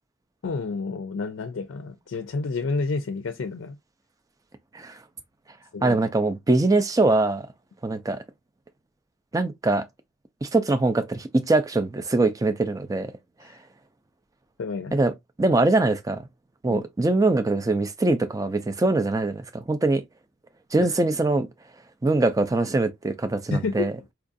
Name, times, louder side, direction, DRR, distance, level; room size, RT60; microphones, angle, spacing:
voice 1, 0.4-3.8 5.7-6.0 13.4-13.6 14.6-15.0 16.6-16.8 20.8-21.0 23.5-23.9, left 4 dB, 65° left, 0.4 m, -30 dB
voice 2, 5.8-7.4 7.8-8.2 9.3-9.9 10.4-13.1 14.9-15.1 15.4-16.2 16.6-20.0 20.7-21.5 22.0-23.9, right 2 dB, 15° right, 0.4 m, -22 dB
4.5 x 2.4 x 2.5 m
head